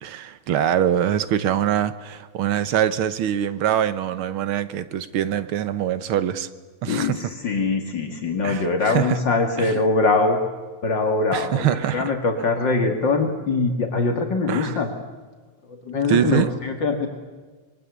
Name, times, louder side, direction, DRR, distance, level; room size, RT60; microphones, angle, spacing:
voice 1, 0.0-6.5 6.8-7.3 8.4-9.2 9.6-9.7 11.3-12.1 14.5-14.8 16.1-16.5, right 10 dB, 85° right, 1.9 m, -23 dB
voice 2, 6.9-10.4 10.8-14.9 15.9-17.1, left 3 dB, 60° left, 2.8 m, -22 dB
25.5 x 22.5 x 8.2 m
omnidirectional pair, 2.3 m